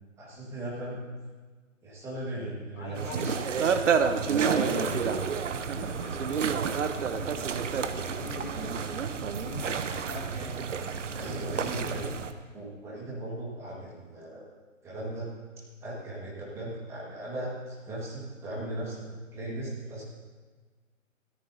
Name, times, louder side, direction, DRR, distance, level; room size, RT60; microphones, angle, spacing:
voice 1, 0.2-1.0 1.8-3.7 4.2-5.3 11.1-12.2 12.5-14.5 14.8-19.0 19.3-20.0, right 1 dB, 5° right, -5 dB, 1.6 m, -37 dB
voice 2, 2.7-3.4 4.7-7.4 7.7-10.6, left 2 dB, 85° left, -4 dB, 3.1 m, -43 dB
sound 1, 2.9-12.3, right 6 dB, 65° right, 0.9 m, -29 dB
16.5 x 13.5 x 2.7 m, 1.4 s
hypercardioid pair, 160°, 40 cm